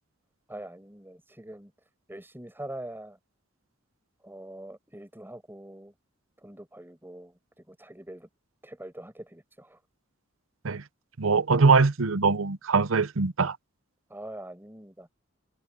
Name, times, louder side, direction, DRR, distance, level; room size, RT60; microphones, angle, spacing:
voice 1, 0.5-1.7 2.1-3.2 4.2-5.9 6.4-8.3 8.6-9.8 14.1-15.1, right 1 dB, 10° right, 5.4 m, -43 dB
voice 2, 11.2-13.6, right 4 dB, 80° right, 0.8 m, -22 dB
open air
head